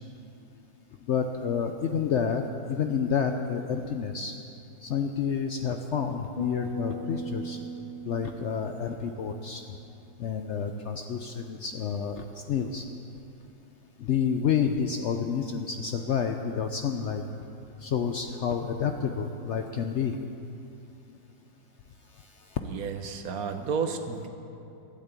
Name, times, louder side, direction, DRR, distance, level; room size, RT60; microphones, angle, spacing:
voice 1, 1.1-2.4 2.7-4.3 4.8-7.6 8.1-9.6 10.2-12.8 14.0-17.2 17.8-20.2, left 7 dB, 80° left, 5 dB, 0.6 m, -29 dB
sound 1, 6.4-9.8, left 1 dB, 30° left, 2.2 m, -38 dB
voice 2, 22.6-24.3, right 5 dB, 60° right, 7 dB, 1.3 m, -32 dB
12.5 x 9.8 x 8.2 m, 2.8 s
omnidirectional pair, 1.9 m